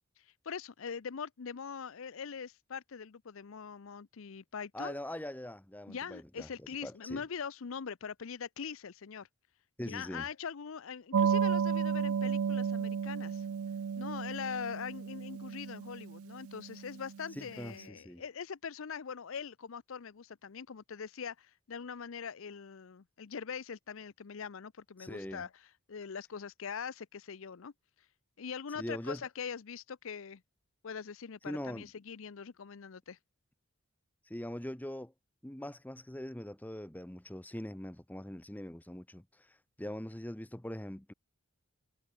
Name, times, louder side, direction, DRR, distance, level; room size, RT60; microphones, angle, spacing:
voice 1, 0.4-5.0 5.9-9.3 9.8-13.4 14.0-25.5 25.9-27.7 28.4-30.4 30.8-33.2, left 6 dB, 60° left, 0.6 m, -42 dB
voice 2, 4.7-6.5 6.8-7.2 9.8-10.3 17.4-18.2 25.0-25.5 28.8-29.2 31.4-31.8 34.3-35.1 35.4-39.2 39.8-41.1, left 1 dB, 5° left, 0.9 m, -42 dB
sound 1, 11.1-17.3, right 6 dB, 75° right, 0.4 m, -33 dB
head